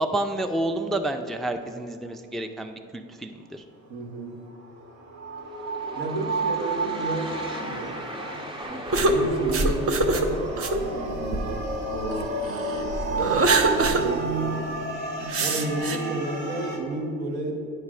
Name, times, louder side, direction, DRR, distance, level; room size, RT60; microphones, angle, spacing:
voice 1, 0.0-3.6, right 1 dB, ahead, 7 dB, 0.3 m, -29 dB
voice 2, 3.9-4.5 5.9-8.5 9.0-14.3 15.4-17.5, right 2 dB, 90° right, 1 dB, 1.2 m, -32 dB
sound 1, 4.5-16.8, right 3 dB, 65° right, 1.3 m, -31 dB
sound 2, 5.5-10.9, right 1 dB, 15° right, 0.8 m, -39 dB
sound 3, 8.9-12.2 12.7-14.1 14.4-14.5 15.3-16.0, right 2 dB, 50° right, 0.7 m, -24 dB
8.8 x 3.2 x 6.2 m, 2.4 s
cardioid pair, 90°, 30 cm